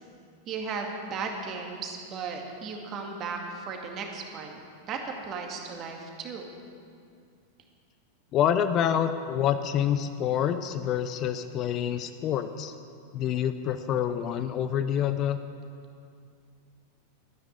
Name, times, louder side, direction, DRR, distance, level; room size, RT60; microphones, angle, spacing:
voice 1, 0.5-4.6 4.9-6.5, right 4 dB, 35° right, 2 dB, 2.1 m, -36 dB
voice 2, 8.3-12.7 13.1-15.4, left 9 dB, 35° left, 10 dB, 0.6 m, -27 dB
13.5 x 9.8 x 8.2 m, 2.3 s
figure-of-eight pair, 90°, 0 cm